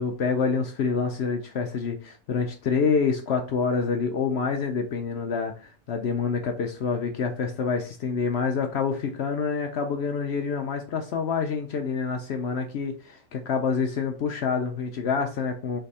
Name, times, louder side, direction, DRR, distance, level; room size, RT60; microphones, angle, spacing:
voice 1, 0.0-15.8, left 5 dB, 70° left, 5 dB, 0.6 m, -27 dB
3.3 x 3.3 x 4.0 m, 0.37 s
omnidirectional pair, 1.6 m